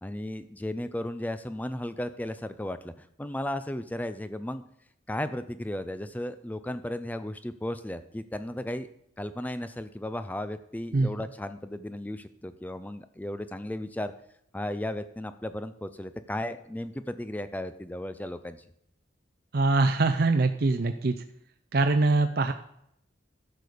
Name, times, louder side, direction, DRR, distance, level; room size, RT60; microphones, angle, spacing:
voice 1, 0.0-4.6 5.1-8.9 9.2-14.1 14.5-18.6, left 1 dB, 10° left, 11 dB, 0.4 m, -35 dB
voice 2, 19.5-21.1 21.7-22.5, right 3 dB, 50° right, 6 dB, 0.5 m, -23 dB
12.0 x 6.7 x 5.0 m, 0.74 s
head